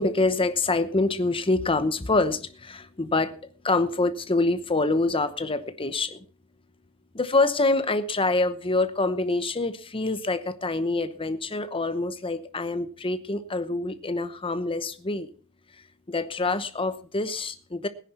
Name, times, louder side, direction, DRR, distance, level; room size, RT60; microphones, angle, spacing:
voice 1, 0.0-3.3 3.6-6.2 7.1-15.3 16.1-17.9, left 2 dB, 25° left, 12 dB, 0.9 m, -26 dB
18.0 x 10.0 x 4.3 m, 0.42 s
head